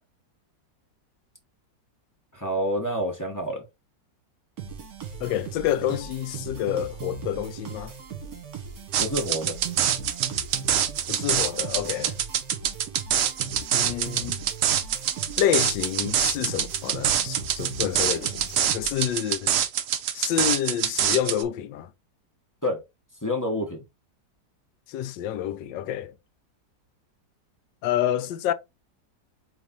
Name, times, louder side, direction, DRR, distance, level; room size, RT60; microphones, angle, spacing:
voice 1, 2.3-3.6 5.3-5.4 9.0-9.6 22.6-22.8 23.2-23.8, equal, 15° left, 0.8 m, -28 dB
sound 1, 4.6-19.1, right 6 dB, 55° right, 1.7 m, -38 dB
voice 2, 5.2-7.9 11.1-12.2 13.7-14.4 15.4-19.5 20.1-21.9 24.9-26.1 27.8-28.5, left 11 dB, 80° left, 1.3 m, -28 dB
sound 2, 8.9-21.4, right 9 dB, 75° right, 0.7 m, -25 dB
4.1 x 3.2 x 3.6 m
omnidirectional pair, 2.0 m